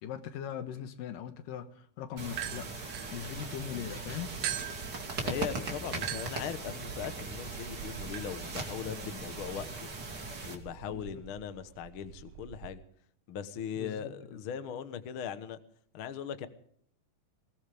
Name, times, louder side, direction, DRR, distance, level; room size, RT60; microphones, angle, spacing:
voice 1, 0.0-2.7 3.1-4.3 10.9-11.2 13.8-14.4, left 9 dB, 80° left, 9 dB, 2.9 m, -40 dB
sound 1, 2.2-10.6, right 3 dB, 35° right, 2.7 m, -39 dB
sound 2, 2.4-3.8 4.4-12.7, right 13 dB, 85° right, 2.4 m, -44 dB
voice 2, 5.2-9.9 10.4-12.8 13.3-15.6 15.9-16.5, left 8 dB, 60° left, 11 dB, 1.4 m, -39 dB
22.0 x 18.5 x 3.5 m, 0.62 s
omnidirectional pair, 3.9 m